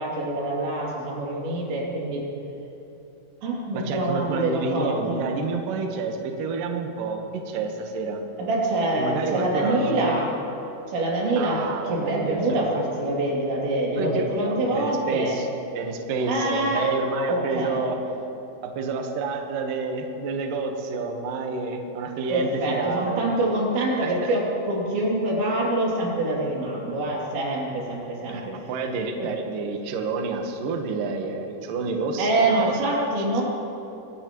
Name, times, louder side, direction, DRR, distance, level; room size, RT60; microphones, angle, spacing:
voice 1, 0.0-2.3 3.4-5.2 8.4-10.3 10.9-15.4 16.2-16.9 17.3-17.8 22.3-28.5 29.2-29.3 32.2-33.4, right 1 dB, 65° right, -4 dB, 4.9 m, -25 dB
voice 2, 3.7-8.2 9.0-10.1 11.4-12.7 14.0-15.4 15.7-18.0 18.8-23.6 24.0-24.1 28.3-33.0, right 4 dB, 90° right, 3 dB, 1.9 m, -29 dB
23.5 x 17.5 x 3.1 m, 3.0 s
omnidirectional pair, 5.9 m